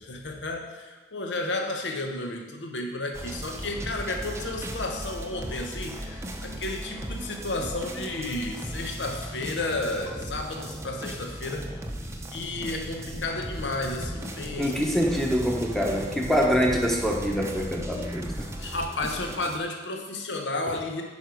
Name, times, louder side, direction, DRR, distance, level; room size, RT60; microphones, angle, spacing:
voice 1, 0.0-11.7 12.3-15.0 18.6-21.0, left 2 dB, 75° left, 3 dB, 0.9 m, -32 dB
sound 1, 3.1-19.6, right 1 dB, 15° right, 0.7 m, -37 dB
sound 2, 8.0-18.6, equal, 20° left, 0.8 m, -43 dB
voice 2, 14.6-18.5, equal, ahead, 0 dB, 1.1 m, -25 dB
9.8 x 5.3 x 4.6 m, 1.2 s
head